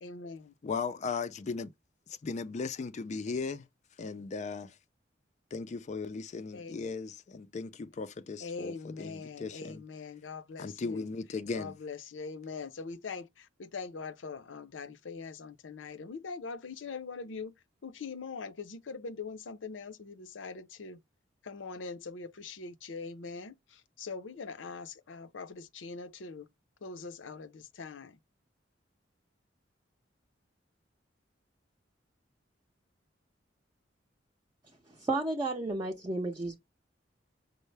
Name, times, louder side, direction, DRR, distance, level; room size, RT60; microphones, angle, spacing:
voice 1, 0.0-0.5 6.5-6.9 8.4-11.0 11.5-17.5 17.8-21.0 21.4-23.5 24.0-26.5 26.8-28.2, left 4 dB, 85° left, 0.6 m, -42 dB
voice 2, 0.6-1.7 2.1-3.7 4.0-4.8 5.5-9.8 10.6-11.8, left 4 dB, 40° left, 0.3 m, -37 dB
voice 3, 34.9-36.6, right 2 dB, 20° right, 0.6 m, -32 dB
5.4 x 2.0 x 3.2 m
head